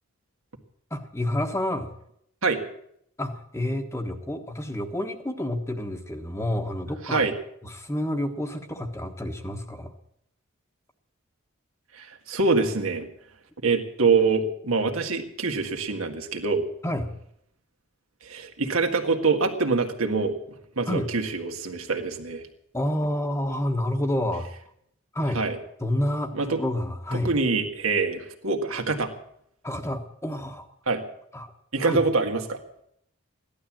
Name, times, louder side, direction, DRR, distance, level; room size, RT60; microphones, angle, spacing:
voice 1, 0.9-1.9 3.2-7.2 7.6-9.9 16.8-17.1 20.9-21.1 22.7-24.5 25.1-25.4 25.8-27.3 29.6-30.7 31.3-31.5 31.8-32.0, left 1 dB, 15° left, 6 dB, 1.2 m, -29 dB
voice 2, 12.0-13.1 13.6-16.6 18.2-20.3 20.8-22.5 25.3-25.6 26.4-26.6 27.2-29.1 30.9-31.0 31.7-32.6, right 4 dB, 85° right, 4 dB, 2.0 m, -25 dB
15.5 x 12.0 x 7.4 m, 0.72 s
head